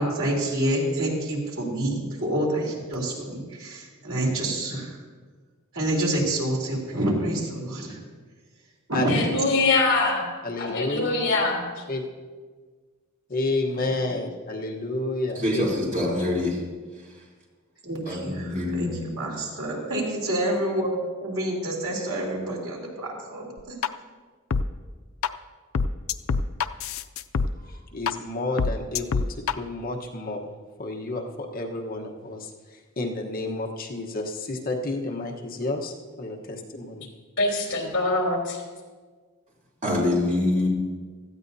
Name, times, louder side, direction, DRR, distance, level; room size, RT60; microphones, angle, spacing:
voice 1, 0.0-5.0 5.7-8.0 9.0-9.2 17.8-18.9 19.2-23.5, right 1 dB, 80° right, -3 dB, 3.3 m, -27 dB
voice 2, 9.1-10.3 10.6-11.7 37.4-38.6, left 3 dB, 60° left, 0 dB, 3.2 m, -23 dB
voice 3, 10.4-11.3 11.9-12.0 13.3-15.6 16.0-16.1 18.1-18.2 27.7-30.5 30.8-37.1, left 2 dB, 45° left, 1 dB, 1.1 m, -30 dB
voice 4, 15.3-16.6 18.1-19.0 39.8-40.7, left 1 dB, 40° right, -5 dB, 3.3 m, -25 dB
sound 1, 23.6-23.9 24.5-24.6 25.2-25.3 25.7-27.5 28.1-28.2 28.6-29.5, left 5 dB, 80° left, 0.4 m, -24 dB
17.5 x 13.0 x 2.7 m, 1.5 s
head